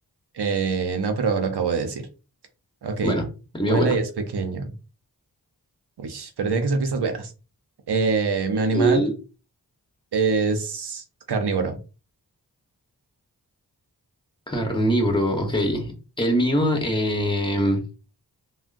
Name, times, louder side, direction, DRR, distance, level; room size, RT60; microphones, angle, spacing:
voice 1, 0.3-2.1 2.8-3.2 3.6-4.7 6.0-7.3 7.9-9.0 10.1-11.8, right 4 dB, 75° right, 6 dB, 0.7 m, -24 dB
voice 2, 3.5-4.0 8.7-9.1 14.5-17.8, equal, 10° left, 3 dB, 1.1 m, -22 dB
3.4 x 2.2 x 2.5 m, 0.32 s
cardioid pair, 40°, 40 cm